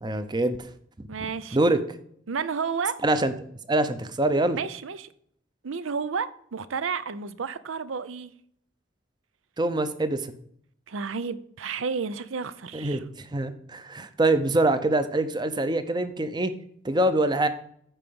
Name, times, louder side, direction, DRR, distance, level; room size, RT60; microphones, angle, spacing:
voice 1, 0.0-0.7 1.0-1.1 1.5-1.8 3.0-3.3 3.7-4.6 9.6-10.3 12.7-16.5 16.8-17.5, right 2 dB, 20° right, 0.6 m, -24 dB
voice 2, 1.1-1.7 2.3-3.0 4.5-5.1 5.6-8.3 10.9-13.0, right 5 dB, 90° right, 0.6 m, -31 dB
9.0 x 4.7 x 6.9 m
head